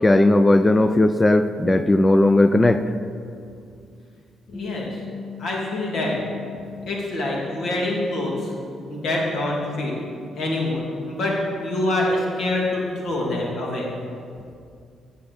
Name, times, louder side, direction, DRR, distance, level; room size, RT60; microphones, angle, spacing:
voice 1, 0.0-2.8, left 1 dB, 20° left, 11 dB, 0.4 m, -17 dB
voice 2, 4.5-5.0 5.4-6.2 6.9-8.5 8.9-10.0 10.4-13.9, left 1 dB, 70° left, -3 dB, 2.5 m, -25 dB
Bass guitar, 4.5-10.8, left 8 dB, 35° left, 1.6 m, -41 dB
8.5 x 7.1 x 7.0 m, 2.4 s
cardioid pair, 90°, 0 cm